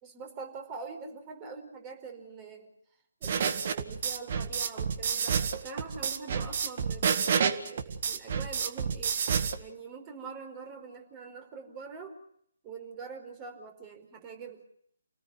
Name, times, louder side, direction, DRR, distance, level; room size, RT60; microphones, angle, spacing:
voice 1, 0.0-2.7 3.2-9.2 9.6-12.1 12.6-14.6, right 5 dB, 20° right, 5 dB, 4.9 m, -44 dB
sound 1, 3.2-9.6, right 6 dB, 45° right, 1.8 m, -29 dB
29.5 x 18.5 x 6.4 m, 0.69 s
figure-of-eight pair, 140°, 0 cm